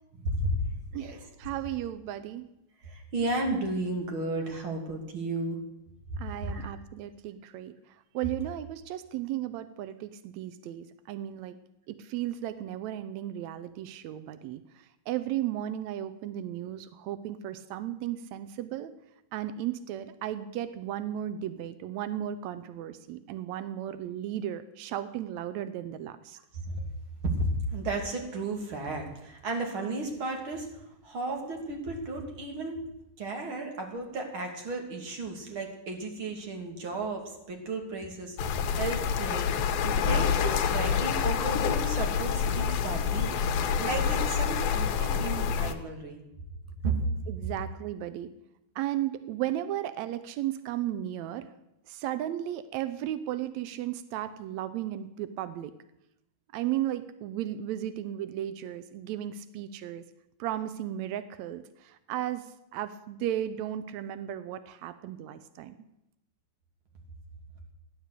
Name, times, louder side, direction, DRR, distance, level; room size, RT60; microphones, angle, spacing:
voice 1, 0.2-0.6 1.0-1.2 2.8-5.6 6.4-6.6 26.6-26.8 27.2-32.8 33.2-38.4 38.8-39.5 39.8-43.4 43.7-46.2 46.8-47.0, right 2 dB, 40° right, 2 dB, 3.0 m, -33 dB
voice 2, 0.9-2.5 6.2-7.7 8.1-11.6 11.9-18.9 19.3-26.4 47.3-48.3 48.7-51.5 51.9-55.7 56.5-60.0 60.4-62.4 62.7-65.8, right 12 dB, 85° right, 12 dB, 1.5 m, -35 dB
sound 1, 38.4-45.7, left 7 dB, 80° left, 2.8 m, -27 dB
15.5 x 10.5 x 8.2 m, 0.86 s
omnidirectional pair, 4.2 m